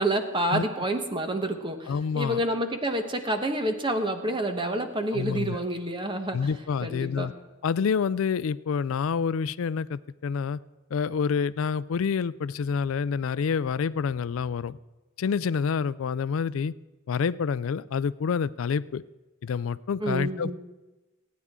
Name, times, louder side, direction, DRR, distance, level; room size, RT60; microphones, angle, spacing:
voice 1, 0.0-6.4 6.8-7.3 20.0-20.6, right 1 dB, 25° right, 6 dB, 1.1 m, -28 dB
voice 2, 1.9-2.4 5.1-5.6 6.3-7.3 7.6-10.6 10.9-14.8 15.2-16.7 17.1-19.0 19.4-20.6, left 6 dB, 70° left, 18 dB, 0.4 m, -28 dB
27.5 x 9.4 x 3.7 m, 1.1 s
head